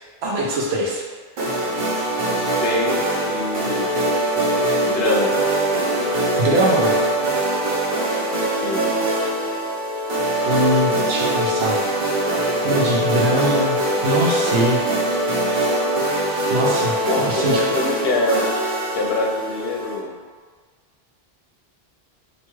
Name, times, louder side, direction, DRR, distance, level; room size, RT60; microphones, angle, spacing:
voice 1, 0.2-1.0 6.4-6.9 10.4-11.8 12.6-14.8 16.5-17.6, equal, 90° right, -2 dB, 0.9 m, -22 dB
sound 1, 1.4-20.0, right 1 dB, 55° right, 0.8 m, -22 dB
voice 2, 2.2-3.9 4.8-5.4 8.6-8.9 17.0-18.5 18.9-20.2, left 2 dB, 75° left, -1 dB, 0.8 m, -25 dB
2.8 x 2.2 x 3.0 m, 1.5 s
omnidirectional pair, 1.0 m